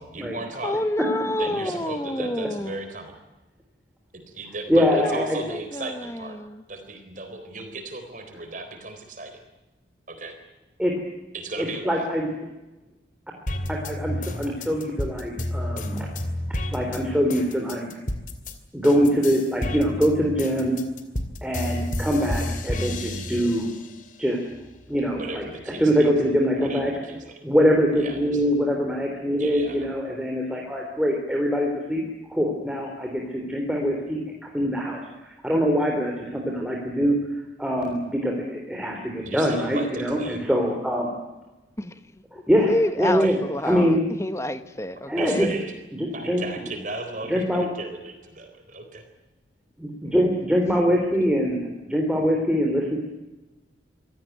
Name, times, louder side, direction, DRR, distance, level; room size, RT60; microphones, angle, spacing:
voice 1, 0.0-0.8 1.4-3.1 4.1-6.4 6.7-9.4 10.1-10.4 11.3-12.1 25.2-26.1 26.5-27.4 28.0-28.4 29.4-29.9 39.2-40.5 43.0-43.4 43.6-43.7 45.1-45.7 46.1-49.0, right 2 dB, 45° right, 4.0 m, -36 dB
voice 2, 0.6-2.8 4.9-6.6 41.8-41.9 42.6-45.6, left 1 dB, 15° left, 1.2 m, -28 dB
voice 3, 4.7-5.4 10.8-10.9 11.6-12.3 13.7-16.1 16.7-17.9 18.7-20.8 21.4-23.7 24.2-24.4 24.9-25.4 25.8-26.9 27.4-32.0 32.3-37.2 37.6-41.1 42.3-43.4 43.6-44.0 45.1-45.5 46.0-46.4 47.3-47.7 49.8-53.0, equal, 5° right, 3.5 m, -23 dB
sound 1, 13.5-18.5 18.8-24.0 24.5-25.5, left 1 dB, 45° left, 2.8 m, -31 dB
26.0 x 16.5 x 9.3 m
head